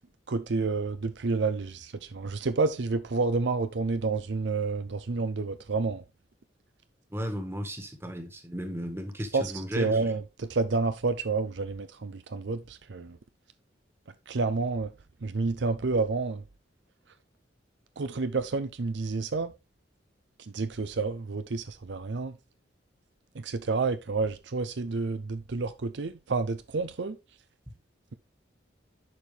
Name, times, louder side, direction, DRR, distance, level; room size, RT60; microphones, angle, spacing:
voice 1, 0.3-6.0 9.3-13.2 14.3-14.9 15.2-16.4 18.0-19.5 20.5-22.3 23.4-27.2, right 3 dB, 65° right, 0.6 m, -29 dB
voice 2, 7.1-10.1, equal, 15° right, 1.6 m, -35 dB
11.0 x 4.6 x 3.3 m
head